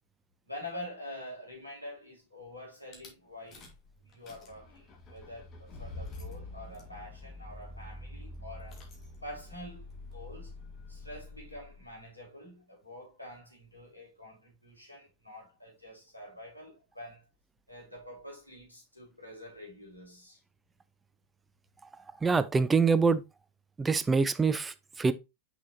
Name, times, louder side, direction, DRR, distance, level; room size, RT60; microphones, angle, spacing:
voice 1, 0.4-3.6 4.0-8.8 9.2-10.5 10.9-17.3 17.7-20.4, left 1 dB, 85° left, 3.8 m, -46 dB
Rattle / Car / Engine starting, 2.9-3.1 3.5-3.9 4.1-11.9, left 2 dB, 30° left, 2.3 m, -46 dB
voice 2, 22.2-23.2 23.8-25.1, right 4 dB, 15° right, 0.6 m, -25 dB
6.1 x 5.6 x 3.1 m
figure-of-eight pair, 90°, 0 cm